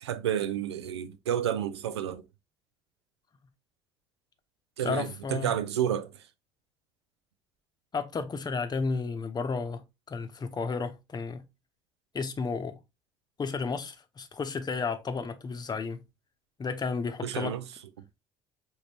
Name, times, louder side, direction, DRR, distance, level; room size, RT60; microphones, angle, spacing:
voice 1, 0.0-2.2 4.8-6.2 17.2-17.6, right 10 dB, 85° right, 0.4 m, -30 dB
voice 2, 4.8-5.5 7.9-11.4 12.1-12.8 13.4-16.0 16.6-17.5, left 4 dB, 30° left, 0.8 m, -32 dB
5.1 x 2.6 x 2.9 m
hypercardioid pair, 55°, 14 cm